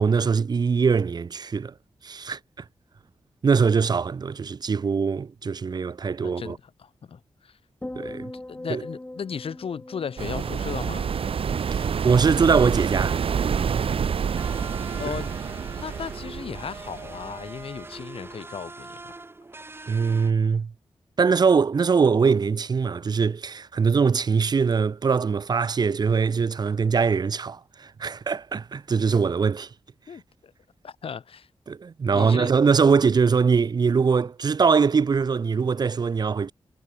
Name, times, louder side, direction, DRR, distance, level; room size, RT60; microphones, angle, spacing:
voice 1, 0.0-1.7 2.0-2.6 3.4-6.6 7.9-8.3 8.7-8.8 11.7-13.3 15.1-15.2 19.9-20.7 21.2-29.7 31.7-36.5, right 5 dB, 45° right, 0.6 m, -22 dB
voice 2, 6.2-7.6 8.3-11.1 14.9-19.1 30.1-30.5 30.8-31.5 32.1-32.5, left 6 dB, 75° left, 4.0 m, -36 dB
sound 1, 7.8-12.2 12.5-12.9, left 1 dB, 15° left, 3.8 m, -41 dB
sound 2, 10.2-17.8, right 7 dB, 75° right, 1.8 m, -27 dB
sound 3, 14.4-20.3, right 2 dB, 25° right, 2.1 m, -42 dB
wide cardioid pair, 100°, 10 cm